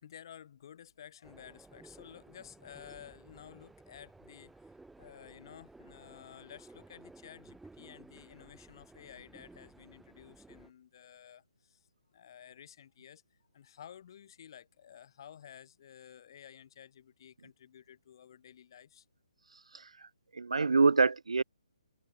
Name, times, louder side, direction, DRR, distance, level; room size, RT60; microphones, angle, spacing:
voice 1, 0.0-11.9 12.1-13.2 13.5-19.1, left 9 dB, 40° left, 4.1 m, -53 dB
sound 1, 1.2-10.7, right 2 dB, 5° right, 1.5 m, -56 dB
voice 2, 19.7-20.1 20.3-21.4, right 4 dB, 65° right, 0.3 m, -26 dB
open air
figure-of-eight pair, 140°, 4 cm